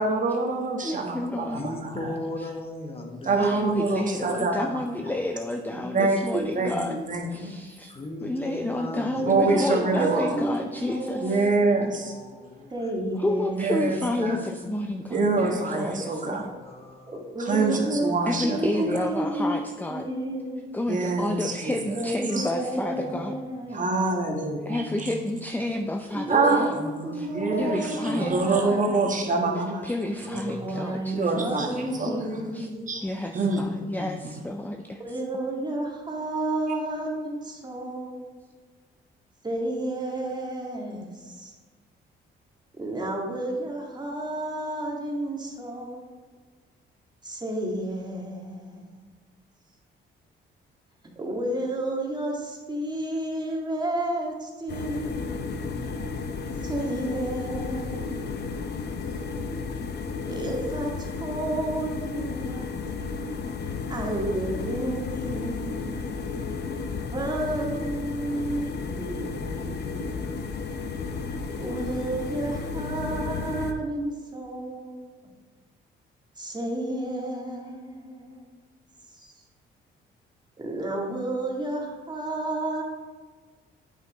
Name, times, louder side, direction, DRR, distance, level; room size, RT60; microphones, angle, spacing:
voice 1, 0.0-2.1 3.2-4.8 5.9-7.6 9.3-10.4 11.2-12.1 13.6-14.4 15.1-16.5 17.4-19.0 20.9-22.0 22.3-22.5 23.7-25.1 26.3-26.7 27.3-29.9 31.1-32.1 32.9-33.0 33.3-34.1, right 3 dB, 40° right, 1 dB, 1.5 m, -26 dB
voice 2, 0.8-1.6 3.4-7.0 7.3-7.9 8.2-11.5 13.2-16.5 18.3-20.1 20.7-23.3 24.7-26.7 27.1-27.3 27.6-28.8 29.8-31.6 32.5-32.7 33.0-35.0, left 1 dB, 10° left, 5 dB, 0.5 m, -30 dB
voice 3, 1.5-4.4 5.0-6.1 6.4-6.8 7.9-11.0 11.6-12.9 13.8-13.9 14.2-15.3 16.4-17.2 18.8-18.9 22.9-23.3 24.3-25.6 26.7-28.4 30.3-31.0 31.9-32.5 32.8-32.9 33.3-33.6 34.0-34.3, left 1 dB, 30° left, 2 dB, 1.2 m, -40 dB
voice 4, 5.7-6.2 6.5-6.6 9.0-11.5 12.7-14.1 17.1-18.1 18.4-19.6 19.9-20.6 21.9-24.0 26.1-29.1 30.3-32.9 35.0-38.3 39.4-41.5 42.8-46.1 47.2-49.0 51.2-55.7 56.6-58.5 60.3-62.7 63.9-66.4 67.1-70.6 71.6-75.0 76.4-78.5 79.1-79.3 80.6-82.8, right 1 dB, 20° right, 0 dB, 1.9 m, -31 dB
sound 1, 54.7-73.7, left 4 dB, 55° left, 0.8 m, -33 dB
8.3 x 5.6 x 4.0 m, 1.4 s
cardioid pair, 90°, 20 cm